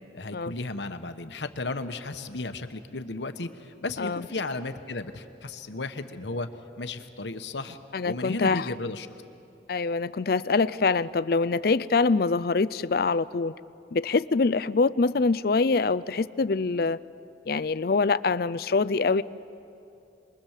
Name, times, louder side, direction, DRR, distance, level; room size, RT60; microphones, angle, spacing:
voice 1, 0.1-6.5 6.8-7.8 8.0-9.1, left 2 dB, 80° left, 9 dB, 1.2 m, -34 dB
voice 2, 7.9-8.8 9.7-13.5 13.9-17.0 17.5-19.2, left 4 dB, 55° left, 16 dB, 0.5 m, -24 dB
27.5 x 21.5 x 7.4 m, 2.7 s
head